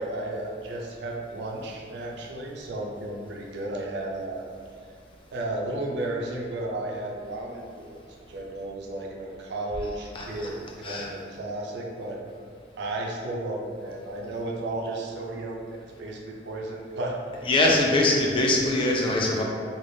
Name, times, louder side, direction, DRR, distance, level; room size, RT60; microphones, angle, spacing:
voice 1, 0.0-4.5 5.3-8.0 8.3-12.2 12.8-17.2 17.6-18.0, right 2 dB, 65° right, 0 dB, 0.4 m, -33 dB
voice 2, 10.1-10.5 10.8-11.1 17.4-19.4, left 2 dB, 30° left, -1 dB, 0.4 m, -23 dB
3.2 x 2.4 x 2.6 m, 2.2 s
head